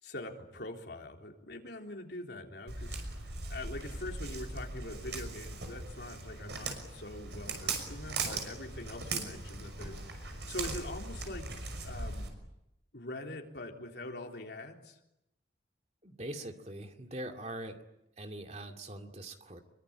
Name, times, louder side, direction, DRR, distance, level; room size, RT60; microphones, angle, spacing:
voice 1, 0.0-3.2 3.5-11.5 11.8-12.3 12.9-15.0, left 1 dB, 70° left, 2 dB, 3.7 m, -43 dB
Walk footsteps, 2.7-12.3, right 3 dB, 75° right, 6.0 m, -39 dB
voice 2, 16.0-17.8 18.2-19.6, right 1 dB, 35° right, 5 dB, 2.4 m, -42 dB
26.0 x 23.5 x 8.9 m, 0.86 s
head